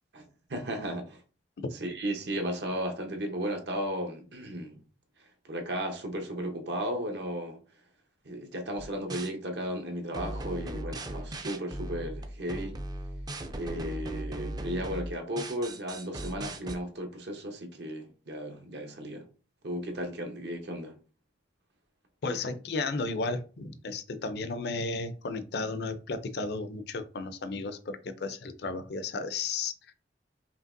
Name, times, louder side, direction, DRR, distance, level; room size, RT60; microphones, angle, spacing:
voice 1, 0.1-1.2 1.8-4.8 5.5-7.6 8.2-12.8 13.6-19.2 19.6-20.9, equal, 65° right, 1.0 m, -35 dB
sound 1, 8.8-9.3 10.1-16.8, right 1 dB, 20° right, 0.4 m, -38 dB
voice 2, 22.2-29.7, left 3 dB, 65° left, 0.5 m, -33 dB
5.2 x 2.9 x 2.6 m
head